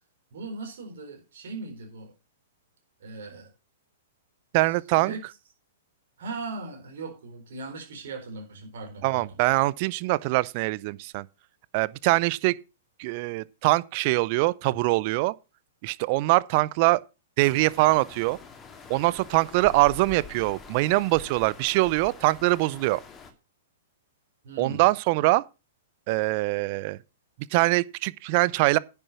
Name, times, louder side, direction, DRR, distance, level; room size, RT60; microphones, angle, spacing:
voice 1, 0.3-2.1 3.0-3.5 4.6-5.2 6.2-9.4 24.4-24.8, right 3 dB, 60° right, 4.2 m, -39 dB
voice 2, 4.5-5.1 9.0-11.3 11.7-12.6 13.0-15.3 15.8-17.0 17.4-18.4 18.9-23.0 24.6-25.4 26.1-27.0 27.5-28.8, right 21 dB, 45° right, 0.5 m, -23 dB
sound 1, 17.4-23.3, left 5 dB, 20° left, 2.3 m, -45 dB
10.0 x 7.0 x 5.9 m
figure-of-eight pair, 110°, 0 cm